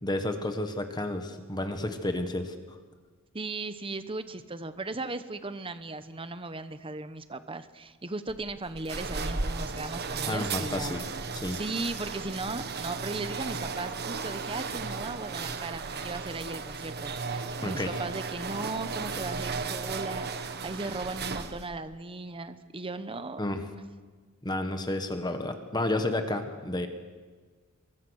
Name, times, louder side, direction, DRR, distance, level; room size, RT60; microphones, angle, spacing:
voice 1, 0.0-2.8 10.3-11.1 11.3-11.6 17.6-17.9 23.4-23.6 24.4-26.9, left 1 dB, 20° left, 7 dB, 1.5 m, -31 dB
voice 2, 3.3-11.0 11.5-23.4, right 3 dB, 25° right, 11 dB, 1.0 m, -37 dB
sound 1, 8.3-21.8, right 4 dB, 50° right, 1.5 m, -35 dB
28.5 x 23.0 x 6.5 m, 1.4 s
head